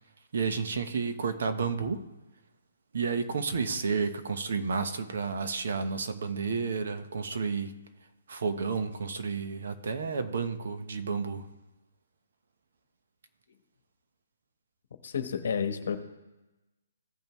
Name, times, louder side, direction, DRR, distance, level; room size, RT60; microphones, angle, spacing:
voice 1, 0.3-2.0 2.9-7.7 8.3-11.5, right 5 dB, 60° right, 9 dB, 1.0 m, -31 dB
voice 2, 15.0-16.0, left 7 dB, 60° left, 9 dB, 1.1 m, -30 dB
15.5 x 5.4 x 3.1 m, 1.0 s
hypercardioid pair, 165°, 0 cm